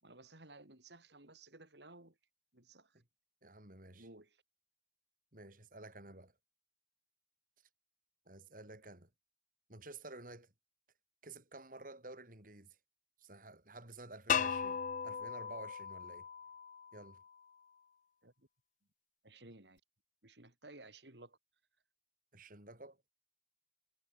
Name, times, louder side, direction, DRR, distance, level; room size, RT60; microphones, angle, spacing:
voice 1, 0.0-2.2 2.5-3.0 3.9-4.4 18.2-18.5 19.2-19.8 20.2-21.4, right 2 dB, 80° right, 4.7 m, -57 dB
voice 2, 3.4-4.1 5.3-6.3 8.3-9.1 9.7-10.5 11.2-12.8 13.2-16.3 16.9-17.2 22.3-23.0, right 2 dB, 50° right, 5.3 m, -52 dB
sound 1, 14.3-17.2, left 7 dB, 45° left, 0.5 m, -37 dB
head